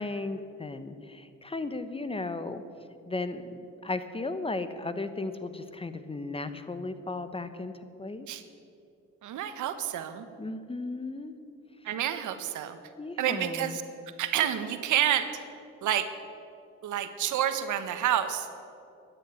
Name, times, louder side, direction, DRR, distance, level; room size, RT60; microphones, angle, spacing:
voice 1, 0.0-2.6 3.1-7.7 8.0-8.3 10.4-11.3 13.0-13.8, left 3 dB, 20° left, 11 dB, 1.1 m, -35 dB
voice 2, 9.2-10.3 11.8-12.8 13.2-13.8 14.2-15.3 15.8-16.1 16.8-18.5, right 10 dB, 80° right, 10 dB, 1.3 m, -29 dB
14.5 x 10.0 x 9.6 m, 2.6 s
cardioid pair, 90°, 30 cm